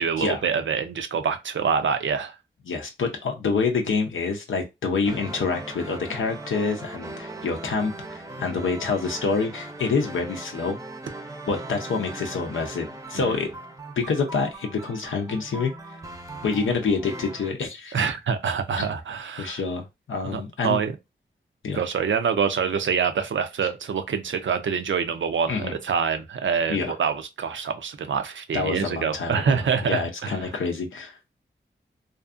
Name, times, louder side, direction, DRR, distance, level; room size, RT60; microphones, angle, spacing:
voice 1, 0.0-2.4 13.1-13.5 17.9-19.6 20.2-20.9 21.7-30.5, right 6 dB, 75° right, 0.5 m, -26 dB
voice 2, 2.7-10.8 11.5-13.5 14.0-15.7 16.4-18.0 18.8-18.9 19.4-20.8 21.6-21.8 25.5-25.7 26.7-26.9 28.5-31.3, left 4 dB, 85° left, 0.5 m, -27 dB
sound 1, 5.0-17.5, right 2 dB, 15° right, 0.6 m, -39 dB
2.5 x 2.5 x 2.4 m
cardioid pair, 45°, 20 cm